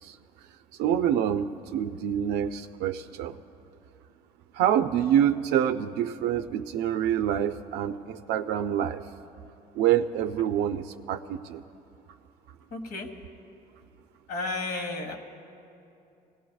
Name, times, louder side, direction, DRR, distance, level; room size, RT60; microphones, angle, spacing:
voice 1, 0.8-3.4 4.5-9.1 9.8-11.6, right 10 dB, 80° right, 7 dB, 0.4 m, -26 dB
voice 2, 12.7-13.1 14.3-15.2, left 2 dB, 65° left, 3 dB, 1.6 m, -32 dB
25.0 x 18.0 x 2.3 m, 2.7 s
cardioid pair, 110°, 17 cm